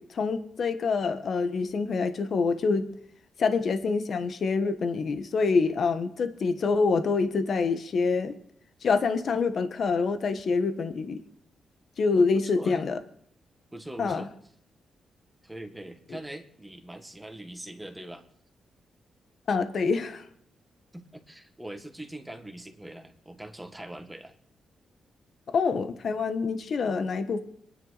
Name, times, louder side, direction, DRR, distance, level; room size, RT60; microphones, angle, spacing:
voice 1, 0.0-2.9 3.4-8.4 8.8-11.2 12.0-13.0 14.0-14.3 19.5-20.3 25.5-27.4, left 4 dB, 55° left, 9 dB, 1.3 m, -26 dB
voice 2, 12.2-12.8 13.7-14.3 15.4-18.3 20.9-24.3, right 1 dB, 5° right, 5 dB, 1.7 m, -42 dB
25.5 x 10.0 x 4.1 m, 0.67 s
cardioid pair, 120°, 0 cm